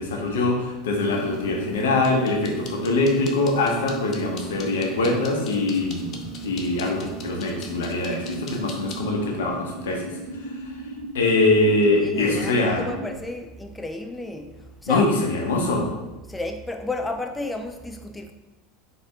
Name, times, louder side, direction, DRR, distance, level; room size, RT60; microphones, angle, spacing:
voice 1, 0.0-6.1 6.4-10.0 11.1-12.8 14.9-15.9, left 2 dB, 70° left, 0 dB, 0.9 m, -23 dB
sound 1, 1.0-9.0, right 4 dB, 40° left, 0.7 m, -37 dB
sound 2, 8.1-13.1, right 1 dB, 80° right, 0.4 m, -37 dB
voice 2, 11.9-14.5 14.8-15.0 16.3-18.3, left 2 dB, 10° left, 5 dB, 0.3 m, -32 dB
4.3 x 3.5 x 3.5 m, 1.1 s
figure-of-eight pair, 75°, 0 cm